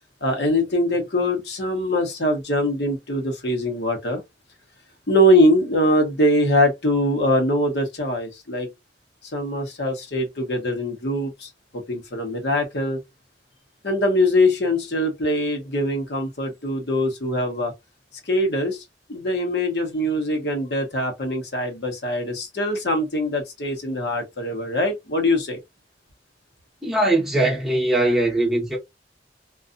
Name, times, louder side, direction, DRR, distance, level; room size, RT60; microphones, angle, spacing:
voice 1, 0.2-4.2 5.1-8.7 9.3-13.0 13.8-17.7 18.3-18.8 19.1-25.6, left 1 dB, 65° left, 0.9 m, -22 dB
voice 2, 26.8-28.8, right 1 dB, ahead, 1.0 m, -20 dB
2.6 x 2.3 x 2.5 m
head